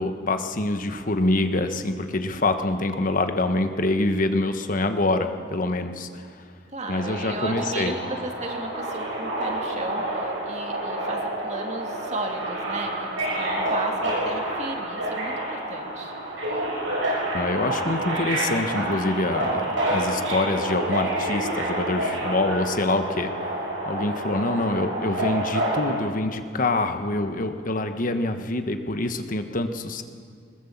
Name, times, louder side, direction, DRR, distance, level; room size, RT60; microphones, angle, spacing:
voice 1, 0.0-6.4 6.9-8.0 17.3-23.3 23.8-30.0, left 2 dB, 45° left, 7 dB, 1.2 m, -25 dB
voice 2, 6.7-16.1 16.5-16.6, right 2 dB, 40° right, 2 dB, 2.5 m, -35 dB
Subway metro underground, 7.0-25.9, right 1 dB, 80° right, 6.7 m, -28 dB
21.5 x 20.5 x 7.3 m, 2.2 s
head